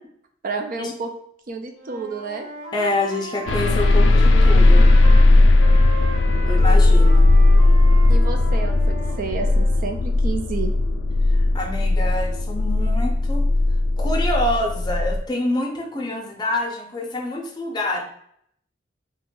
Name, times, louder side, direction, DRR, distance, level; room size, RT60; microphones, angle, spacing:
voice 1, 0.4-1.1 1.5-2.5 6.3-6.4 8.1-10.7, right 4 dB, 50° right, 5 dB, 0.4 m, -30 dB
Wind instrument woodwind instrument, 1.7-5.3 5.6-9.8, equal, 80° right, 1.3 m, -36 dB
voice 2, 2.7-4.9 6.5-7.3 11.3-13.4 14.0-18.0, left 1 dB, 25° left, 1 dB, 0.5 m, -26 dB
sound 1, 3.5-15.2, left 2 dB, 80° left, 0.3 m, -16 dB
2.9 x 2.5 x 3.7 m, 0.68 s
head